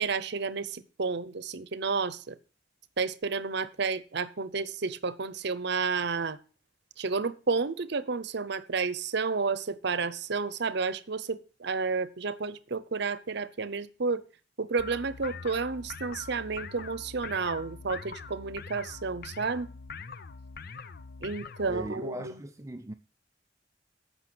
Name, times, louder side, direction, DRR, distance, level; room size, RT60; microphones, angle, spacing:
voice 1, 0.0-2.4 3.0-6.4 7.0-14.2 14.6-19.7 21.2-22.4, right 4 dB, 65° right, 0.8 m, -31 dB
sound 1, 14.8-21.9, left 5 dB, 55° left, 0.7 m, -43 dB
voice 2, 21.6-22.9, right 1 dB, 15° right, 0.5 m, -39 dB
14.5 x 5.7 x 6.2 m
head